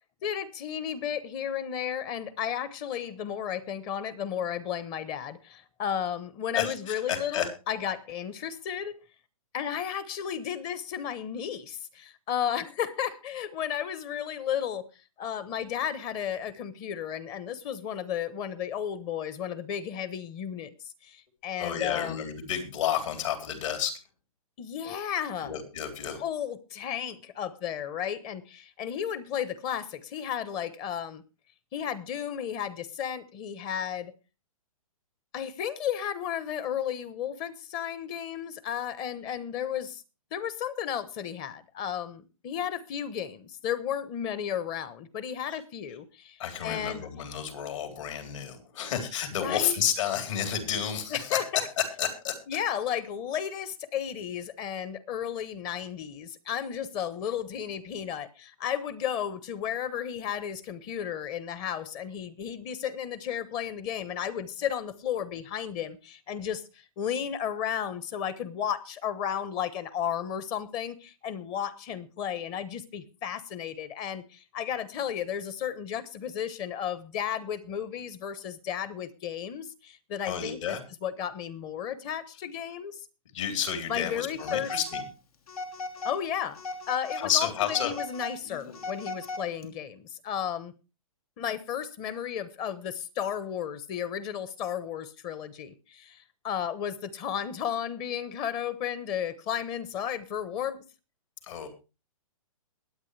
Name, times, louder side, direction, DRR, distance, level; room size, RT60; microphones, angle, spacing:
voice 1, 0.2-9.0 9.5-14.9 15.2-20.7 21.0-22.3 24.6-25.5 26.1-31.2 31.7-34.1 35.3-40.0 40.3-47.1 49.4-49.8 51.1-51.7 52.5-80.6 81.0-83.0 83.9-84.8 86.0-86.6 86.9-90.7 91.4-100.8, left 9 dB, 25° left, 1.0 m, -33 dB
voice 2, 6.6-7.5 21.6-23.9 25.4-26.2 45.5-45.6 46.4-52.4 80.2-80.8 83.3-85.0 87.2-87.9 101.4-101.7, left 9 dB, 60° left, 3.7 m, -31 dB
Telephone, 84.4-85.1 85.5-86.2 86.6-87.3 87.6-89.7, left 3 dB, 80° left, 2.8 m, -37 dB
22.0 x 8.6 x 3.3 m
hypercardioid pair, 155°, 18 cm